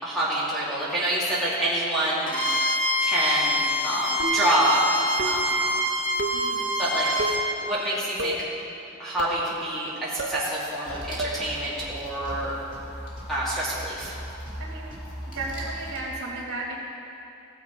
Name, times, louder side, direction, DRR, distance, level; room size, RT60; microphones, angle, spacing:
voice 1, 0.0-2.3 3.0-4.9 5.2-5.6 6.8-8.4 9.0-12.5 13.3-14.1, right 1 dB, ahead, -9 dB, 2.3 m, -27 dB
Bowed string instrument, 2.3-7.4, equal, 65° left, 2.7 m, -26 dB
sound 1, 4.2-4.6 5.2-5.6 6.2-6.5 7.2-7.5 8.2-8.5 9.2-9.5 10.2-10.4 11.2-11.5, right 1 dB, 60° right, 0.9 m, -31 dB
voice 2, 6.3-6.7 14.6-14.9 15.3-16.8, right 2 dB, 85° right, -7 dB, 2.0 m, -34 dB
sound 2, 10.8-16.0, equal, 40° left, 2.4 m, -38 dB
16.5 x 7.2 x 5.1 m, 2.8 s
head